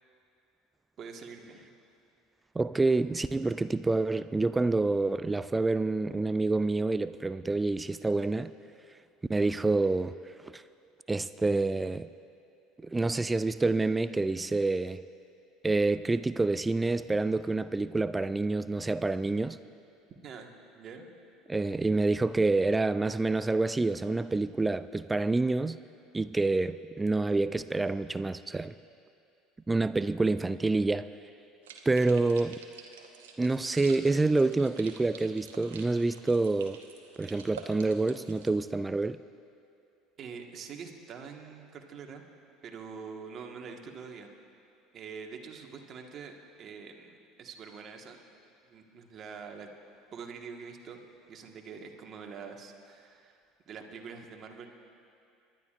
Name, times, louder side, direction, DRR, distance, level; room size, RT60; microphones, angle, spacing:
voice 1, 1.0-1.7 20.2-20.5 20.7-21.0 40.2-42.2 42.6-44.3 44.9-48.2 48.6-49.7 50.1-51.0 51.3-53.4 53.7-54.7, right 5 dB, 45° right, 3 dB, 1.5 m, -45 dB
voice 2, 2.6-8.5 9.3-10.2 10.4-10.6 11.1-12.1 12.8-15.0 15.6-19.6 21.5-25.8 26.1-28.7 29.7-31.1 31.9-32.6 33.4-36.8 37.2-39.2, right 3 dB, 15° right, 14 dB, 0.3 m, -27 dB
sound 1, 31.6-38.5, right 6 dB, 80° right, 1.1 m, -48 dB
29.0 x 12.0 x 2.5 m, 2.6 s
hypercardioid pair, 70°, 0 cm